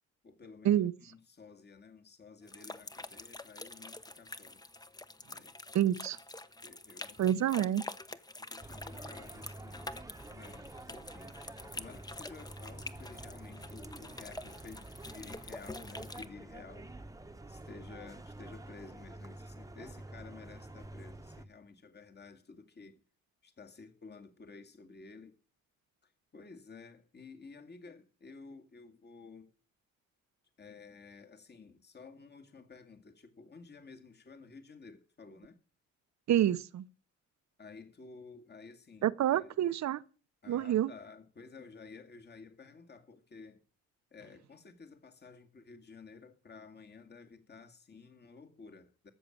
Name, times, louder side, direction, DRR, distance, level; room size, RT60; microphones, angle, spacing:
voice 1, 0.2-4.6 5.3-5.5 5.8-5.9 6.6-7.2 8.4-9.9 10.3-11.4 11.7-16.9 17.5-23.0 23.4-25.4 26.3-29.5 30.6-35.6 37.6-39.5 40.4-43.6 44.1-49.1, left 4 dB, 35° left, 2.2 m, -53 dB
sound 1, 2.5-16.3, left 2 dB, 15° left, 1.0 m, -47 dB
voice 2, 5.7-6.2 7.2-7.8 36.3-36.8 39.0-40.0 40.5-40.9, right 11 dB, 65° right, 0.9 m, -28 dB
sound 2, 8.6-21.5, right 2 dB, 10° right, 1.2 m, -48 dB
13.5 x 7.5 x 8.6 m
cardioid pair, 90°, 30 cm